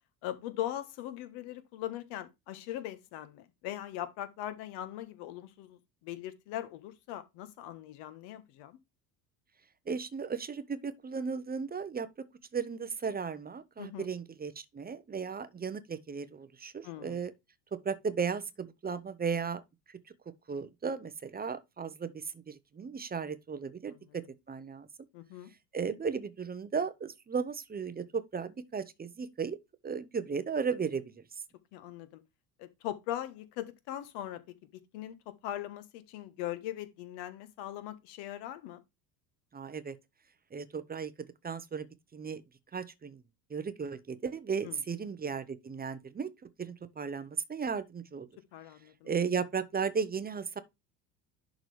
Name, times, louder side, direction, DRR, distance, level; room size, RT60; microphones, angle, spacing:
voice 1, 0.2-8.8 13.8-14.1 16.8-17.2 23.9-24.1 25.1-25.5 31.7-32.2 32.6-34.4 34.7-38.8 44.6-44.8 48.5-49.1, left 12 dB, 55° left, 1.4 m, -40 dB
voice 2, 9.9-12.1 12.5-17.3 17.7-19.6 19.9-20.0 20.5-24.9 25.7-29.6 29.8-31.4 39.5-40.0 40.5-41.9 42.1-42.4 42.7-43.2 43.5-48.3 49.0-50.6, right 6 dB, 20° right, 0.9 m, -35 dB
11.0 x 3.9 x 3.3 m
hypercardioid pair, 70°, 49 cm